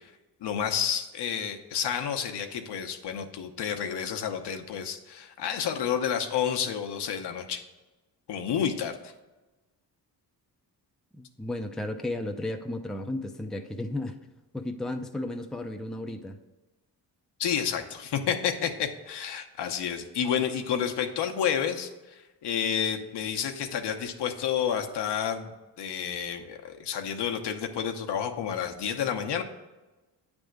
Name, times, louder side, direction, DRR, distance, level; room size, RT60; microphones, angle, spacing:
voice 1, 0.4-7.6 8.3-9.1 17.4-25.5 25.8-29.4, left 8 dB, 75° left, 5 dB, 0.9 m, -30 dB
voice 2, 11.1-14.2 14.5-16.4, left 1 dB, ahead, 5 dB, 0.5 m, -34 dB
8.9 x 3.5 x 6.4 m, 1.1 s
cardioid pair, 75°, 41 cm